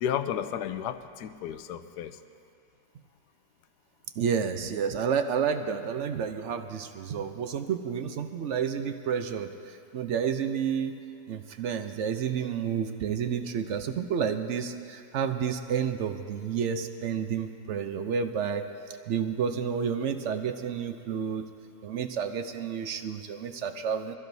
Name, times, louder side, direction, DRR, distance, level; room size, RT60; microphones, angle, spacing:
voice 1, 0.0-2.1, left 9 dB, 80° left, 10 dB, 1.1 m, -32 dB
voice 2, 4.2-11.0 11.3-18.7 19.1-21.4 21.8-24.2, right 7 dB, 65° right, 8 dB, 0.7 m, -30 dB
23.0 x 14.5 x 2.7 m, 2.4 s
omnidirectional pair, 1.8 m